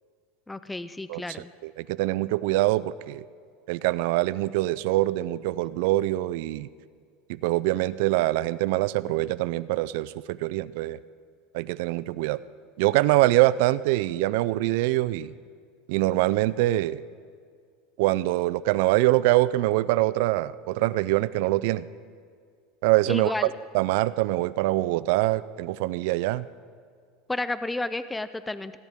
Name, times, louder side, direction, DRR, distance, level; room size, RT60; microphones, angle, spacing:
voice 1, 0.5-1.5 23.1-23.5 27.3-28.8, left 2 dB, 10° left, 13 dB, 0.4 m, -31 dB
voice 2, 1.6-3.2 3.7-6.7 7.3-11.0 11.5-12.4 12.8-15.3 15.9-17.0 18.0-21.9 22.8-23.3 23.7-26.5, right 17 dB, 70° right, 18 dB, 0.4 m, -24 dB
18.0 x 17.0 x 3.6 m, 2.1 s
supercardioid pair, 140°, 0 cm